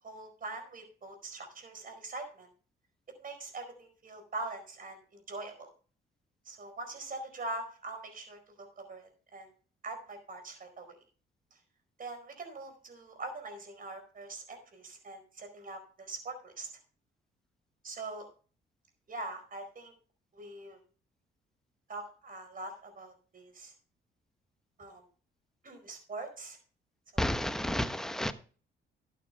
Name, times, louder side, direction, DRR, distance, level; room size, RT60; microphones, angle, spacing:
voice 1, 0.0-2.5 3.2-5.7 6.4-9.5 9.8-11.0 12.0-16.7 17.8-18.3 19.1-19.9 20.3-20.8 21.9-23.7 24.8-25.0 25.6-26.6, right 2 dB, 45° right, 5 dB, 4.7 m, -43 dB
voice 2, 27.2-28.3, left 1 dB, ahead, 10 dB, 1.0 m, -31 dB
12.0 x 9.1 x 3.4 m, 0.39 s
cardioid pair, 90°, 20 cm